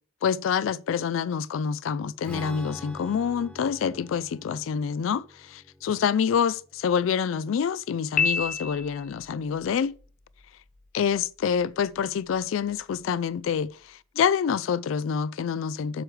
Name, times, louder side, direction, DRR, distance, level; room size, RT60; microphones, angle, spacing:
voice 1, 0.2-10.0 10.9-16.0, left 7 dB, 70° left, 0.3 m, -27 dB
Strum, 2.2-7.9, left 1 dB, 5° left, 1.2 m, -45 dB
Piano, 8.2-9.3, left 5 dB, 40° left, 0.8 m, -27 dB
7.9 x 3.2 x 6.1 m
head